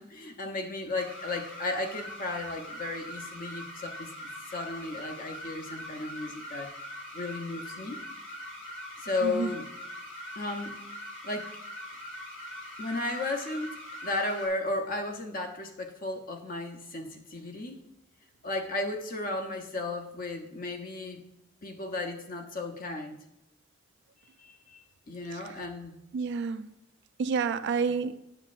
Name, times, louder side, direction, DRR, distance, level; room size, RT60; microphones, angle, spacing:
voice 1, 0.0-6.7 7.1-8.0 9.0-9.7 10.4-10.8 11.2-11.5 12.8-17.8 18.4-21.2 21.6-23.2 24.4-24.8 25.1-26.0, left 2 dB, 40° left, 4 dB, 0.8 m, -34 dB
sound 1, 1.0-14.5, left 1 dB, 70° left, 2.9 m, -42 dB
voice 2, 26.1-26.7 27.2-28.2, right 5 dB, 55° right, 12 dB, 0.3 m, -29 dB
9.0 x 7.1 x 2.5 m, 0.85 s
head